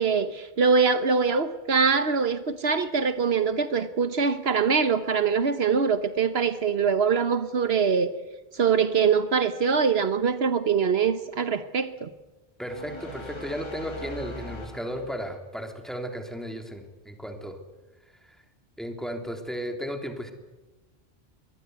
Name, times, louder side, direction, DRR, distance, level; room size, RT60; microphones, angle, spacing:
voice 1, 0.0-8.1 8.5-12.1, right 5 dB, 75° right, 11 dB, 1.3 m, -23 dB
voice 2, 12.6-17.6 18.2-18.3 18.8-20.3, equal, ahead, 4 dB, 3.2 m, -35 dB
sound 1, 12.7-15.4, left 1 dB, 25° left, 1.7 m, -40 dB
24.5 x 20.0 x 9.4 m, 1.1 s
omnidirectional pair, 1.1 m